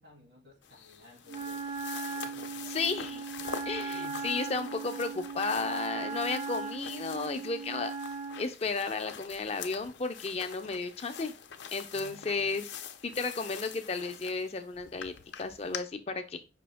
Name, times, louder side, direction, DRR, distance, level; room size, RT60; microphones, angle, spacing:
voice 1, 0.0-1.6 2.1-3.1 3.9-4.4 11.9-12.6, left 1 dB, 80° right, -1 dB, 2.2 m, -56 dB
sound 1, 0.6-15.8, left 7 dB, 85° left, 0.5 m, -45 dB
Wind instrument woodwind instrument, 1.3-8.5, right 4 dB, 35° right, 0.4 m, -38 dB
voice 2, 2.7-3.2 3.6-7.9 8.4-11.3 11.7-16.4, left 4 dB, 35° left, 7 dB, 0.4 m, -33 dB
5.2 x 2.7 x 3.4 m, 0.28 s
head